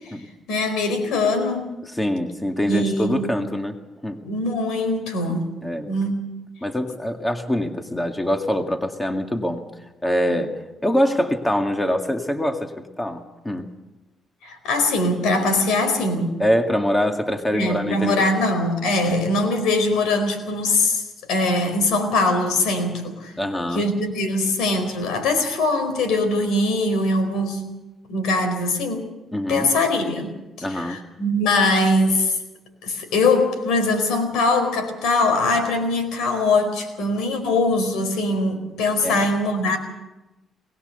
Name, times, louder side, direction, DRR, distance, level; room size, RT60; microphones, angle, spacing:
voice 1, 0.5-1.8 2.7-3.3 4.2-5.5 5.9-6.2 14.4-16.3 17.5-21.0 21.3-23.3 23.7-27.6 28.1-29.1 29.5-32.4 32.8-39.8, left 2 dB, 90° left, 7 dB, 4.6 m, -22 dB
voice 2, 1.9-3.8 4.0-4.2 5.3-5.4 5.6-5.9 6.6-9.6 10.0-12.7 13.0-13.7 16.4-18.3 19.0-19.1 23.4-23.8 29.3-29.7 30.6-31.0 39.0-39.3, equal, 10° left, 5 dB, 2.0 m, -24 dB
22.0 x 19.0 x 6.8 m, 1.0 s
cardioid pair, 90°, 0 cm